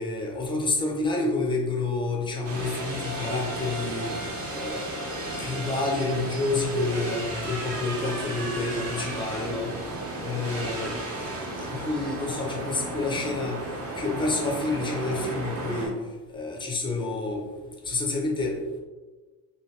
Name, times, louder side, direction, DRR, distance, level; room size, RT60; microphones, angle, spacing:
voice 1, 0.0-4.2 4.5-9.8 10.2-13.7 14.0-16.0 16.3-17.4 17.8-18.6, left 3 dB, 15° left, 0 dB, 0.4 m, -29 dB
sound 1, 2.4-15.9, right 1 dB, 35° right, 0.8 m, -34 dB
3.1 x 2.6 x 2.8 m, 1.3 s
cardioid pair, 145°, 40 cm